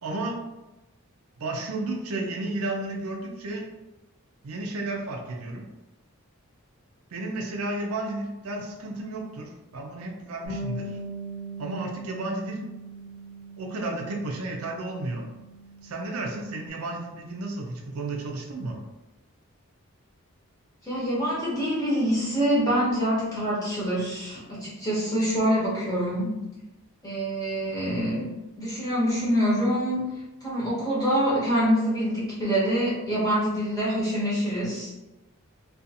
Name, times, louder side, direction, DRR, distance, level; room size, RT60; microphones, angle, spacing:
voice 1, 0.0-0.4 1.4-3.7 4.4-5.6 7.1-11.0 11.6-12.6 13.6-15.3 15.8-18.8, right 2 dB, 80° right, 1 dB, 0.5 m, -32 dB
Bass guitar, 10.5-16.7, right 2 dB, 35° right, 0.8 m, -40 dB
voice 2, 20.8-26.4 27.0-28.3 28.6-30.1 30.4-34.9, equal, 15° left, -8 dB, 0.7 m, -25 dB
2.5 x 2.4 x 2.7 m, 1.0 s
head